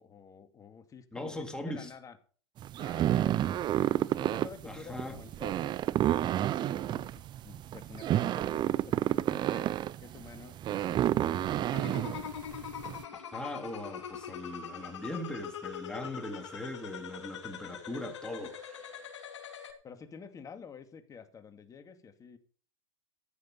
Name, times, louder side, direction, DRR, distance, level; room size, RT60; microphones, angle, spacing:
voice 1, 0.0-2.2 2.8-9.7 10.0-12.0 19.8-22.4, left 6 dB, 25° left, 2.3 m, -50 dB
voice 2, 1.1-1.9 4.7-5.2 13.3-19.0, left 1 dB, 5° left, 3.4 m, -40 dB
sound 1, 2.6-13.0, right 12 dB, 30° right, 0.6 m, -30 dB
sound 2, 11.7-19.7, left 8 dB, 80° left, 3.1 m, -43 dB
14.5 x 9.8 x 5.5 m
hypercardioid pair, 105°, 15 cm